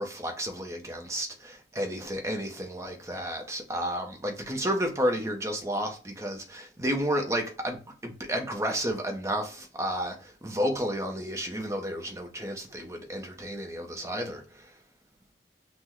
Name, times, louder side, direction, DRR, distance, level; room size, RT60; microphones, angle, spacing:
voice 1, 0.0-14.7, equal, 15° right, 0.7 m, -32 dB
5.8 x 2.1 x 3.0 m
head